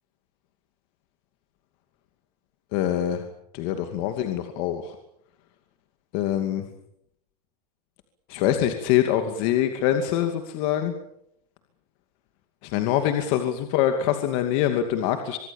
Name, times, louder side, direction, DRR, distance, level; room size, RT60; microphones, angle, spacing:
voice 1, 2.7-3.2 3.5-4.9 6.1-6.6 8.3-10.9 12.6-15.4, left 11 dB, 45° left, 6 dB, 2.6 m, -24 dB
25.5 x 22.5 x 7.2 m, 0.75 s
supercardioid pair, 165°, 20 cm